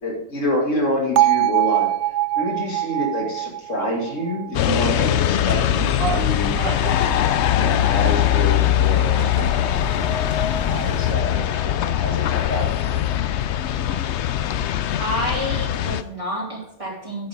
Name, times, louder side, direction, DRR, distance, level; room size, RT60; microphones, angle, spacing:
voice 1, 0.0-1.9 2.4-6.5 7.5-10.0 10.7-13.0, left 1 dB, 90° left, 0 dB, 2.8 m, -27 dB
Bell, 1.2-5.2, right 15 dB, 75° right, 0.9 m, -22 dB
sound 1, 4.5-16.0, left 11 dB, 70° left, 0.8 m, -21 dB
sound 2, 5.8-11.1, right 3 dB, 55° right, 1.4 m, -33 dB
voice 2, 15.0-17.3, equal, 25° right, -3 dB, 2.8 m, -28 dB
10.5 x 8.7 x 3.6 m, 0.74 s
omnidirectional pair, 1.3 m